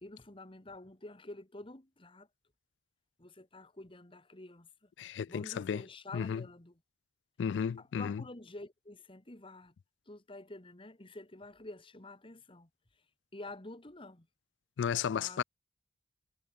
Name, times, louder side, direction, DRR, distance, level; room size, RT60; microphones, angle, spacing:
voice 1, 0.0-2.3 3.2-4.9 5.3-6.7 7.8-9.7 10.1-12.7 13.3-14.3 15.2-15.4, left 2 dB, 30° left, 1.7 m, -49 dB
voice 2, 5.0-5.8 6.1-6.4 7.4-8.2 14.8-15.4, left 7 dB, 80° left, 0.3 m, -33 dB
head